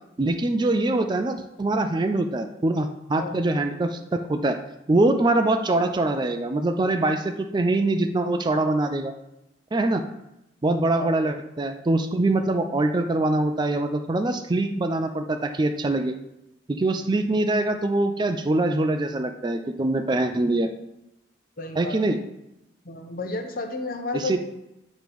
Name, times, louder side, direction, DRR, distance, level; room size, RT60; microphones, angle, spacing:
voice 1, 0.2-4.6 4.9-9.1 9.7-10.0 10.6-16.1 16.7-20.7 21.8-22.2 24.1-24.4, right 2 dB, 25° right, 7 dB, 0.4 m, -23 dB
voice 2, 21.6-22.2 22.8-24.4, left 3 dB, 50° left, 4 dB, 0.9 m, -32 dB
8.7 x 3.1 x 5.2 m, 0.89 s
head